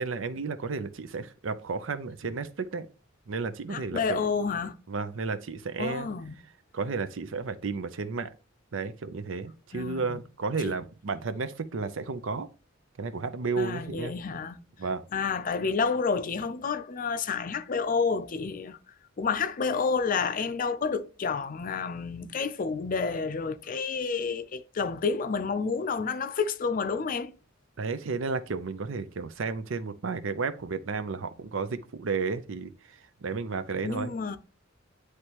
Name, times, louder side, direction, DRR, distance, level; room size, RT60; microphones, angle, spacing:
voice 1, 0.0-2.9 3.3-4.2 4.9-6.1 6.7-8.3 8.7-12.5 13.0-14.1 14.8-15.0 27.8-34.1, right 4 dB, 70° right, 0.6 m, -32 dB
voice 2, 3.7-4.7 5.8-6.4 9.7-10.2 10.6-10.7 13.6-14.6 15.1-18.8 19.2-27.4 33.8-34.4, left 5 dB, 45° left, 0.5 m, -29 dB
9.6 x 3.3 x 3.0 m
head